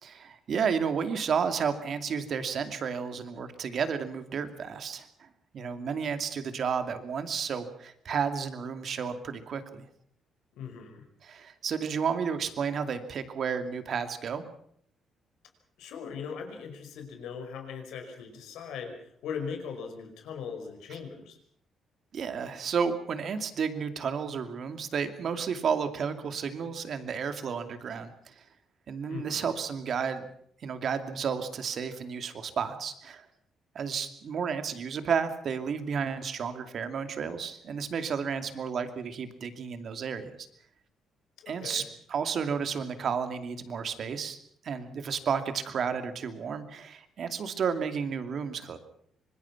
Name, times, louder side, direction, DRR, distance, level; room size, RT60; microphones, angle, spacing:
voice 1, 0.0-5.3 5.5-9.8 11.2-14.4 22.1-28.4 28.9-30.3 30.6-33.3 33.7-40.4 41.5-41.8 42.1-44.4 44.6-48.8, right 6 dB, 60° right, 9 dB, 2.5 m, -32 dB
voice 2, 10.6-11.0 15.8-21.4 29.1-29.5 41.4-41.9, left 6 dB, 85° left, 5 dB, 5.2 m, -39 dB
25.5 x 21.0 x 6.0 m, 0.66 s
cardioid pair, 90°, 0 cm